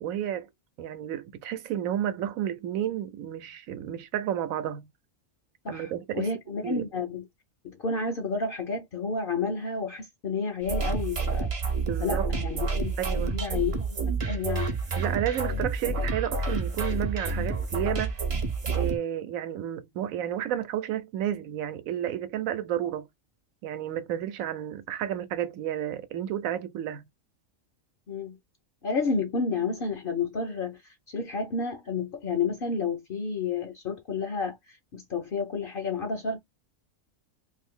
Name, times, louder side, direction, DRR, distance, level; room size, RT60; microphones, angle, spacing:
voice 1, 0.0-0.5 0.8-4.9 5.7-6.3 6.6-6.9 11.9-12.3 13.0-13.3 15.0-18.2 18.7-23.1 23.6-27.1, right 11 dB, 85° right, 1.0 m, -31 dB
voice 2, 5.6-7.2 7.6-11.5 12.0-13.9 14.2-14.8 28.1-28.4 28.8-30.8 31.1-36.4, left 4 dB, 55° left, 0.6 m, -31 dB
sound 1, 10.6-19.0, right 3 dB, 40° right, 0.5 m, -29 dB
2.6 x 2.6 x 3.6 m
omnidirectional pair, 1.4 m